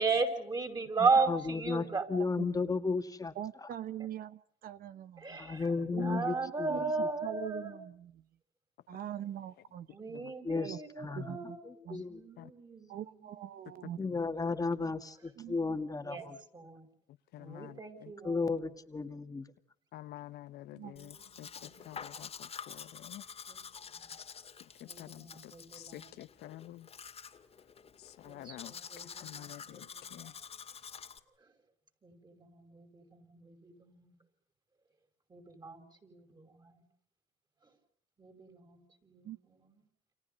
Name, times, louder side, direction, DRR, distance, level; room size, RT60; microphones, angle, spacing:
voice 1, 0.0-2.1 5.2-7.8 9.9-13.9 16.0-16.3 16.5-16.9 17.4-18.6 20.8-22.1 23.5-23.6 23.9-24.1 24.8-26.2 28.3-30.3 32.0-34.2 35.3-36.8 38.2-39.8, right 4 dB, 25° right, 6 dB, 5.6 m, -37 dB
voice 2, 1.3-3.3 3.6-3.7 5.4-6.7 10.4-11.4 11.6-12.2 14.0-16.4 18.2-19.5, left 4 dB, 20° left, 7 dB, 2.2 m, -34 dB
voice 3, 3.3-5.4 5.9-6.2 6.7-6.9 7.2-8.2 8.9-9.9 10.6-10.8 11.1-11.6 11.8-12.0 12.9-14.0 15.4-15.8 20.7-21.0 39.2-39.4, right 11 dB, 60° right, 14 dB, 1.0 m, -42 dB
voice 4, 5.7-6.1 10.1-10.3 12.4-12.5 13.8-13.9 14.5-14.6 17.3-18.1 19.9-23.2 24.8-26.9 28.0-28.8 29.2-30.3, left 14 dB, 75° left, 12 dB, 1.2 m, -49 dB
Domestic sounds home sounds, 21.0-31.2, left 6 dB, 35° left, 2.3 m, -48 dB
30.0 x 28.5 x 5.5 m, 0.62 s
cardioid pair, 110°, 17 cm